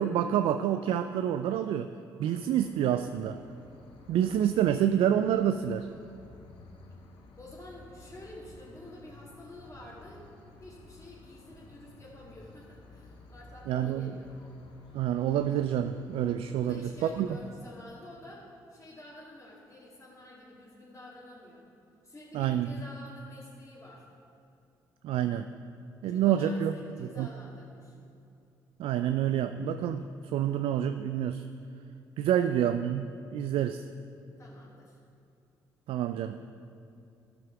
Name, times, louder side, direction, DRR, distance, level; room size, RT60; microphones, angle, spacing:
voice 1, 0.0-1.9 2.2-3.4 4.1-5.9 13.7-14.1 14.9-17.3 22.3-22.7 25.0-25.5 26.0-26.7 27.0-27.3 28.8-30.0 30.3-31.5 32.2-33.1 33.3-33.8 35.9-36.4, right 10 dB, 65° right, 10 dB, 0.4 m, -27 dB
sound 1, 2.6-17.5, left 2 dB, 60° left, 1.6 m, -53 dB
voice 2, 7.4-10.2 10.6-14.3 16.6-21.7 22.0-24.1 26.1-28.0 32.3-32.7 34.4-35.0, left 1 dB, 25° left, -7 dB, 2.5 m, -49 dB
12.5 x 5.9 x 5.9 m, 2.5 s
hypercardioid pair, 50°, 10 cm